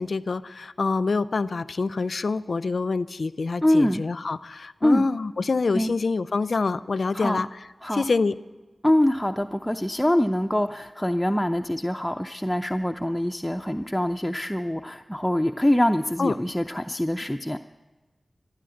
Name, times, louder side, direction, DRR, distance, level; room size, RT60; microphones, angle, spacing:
voice 1, 0.0-7.5 7.9-8.3 16.2-16.3, left 4 dB, 70° left, 17 dB, 0.5 m, -26 dB
voice 2, 3.6-4.0 4.8-5.1 5.7-5.9 7.1-7.4 7.8-8.0 8.8-17.6, left 1 dB, 5° left, 5 dB, 0.6 m, -24 dB
14.0 x 11.5 x 7.8 m, 1.2 s
cardioid pair, 45°, 0 cm